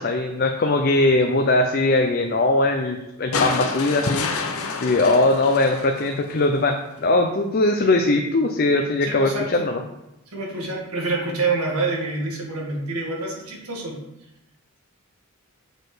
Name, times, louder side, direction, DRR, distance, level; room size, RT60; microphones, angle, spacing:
voice 1, 0.0-4.3 4.8-9.8, left 2 dB, 45° left, 4 dB, 0.5 m, -20 dB
sound 1, 3.3-6.6 8.0-8.1, left 4 dB, 80° left, 0.8 m, -29 dB
voice 2, 9.0-9.7 10.3-14.0, right 3 dB, 85° right, -2 dB, 1.7 m, -27 dB
6.4 x 4.3 x 5.0 m, 0.89 s
head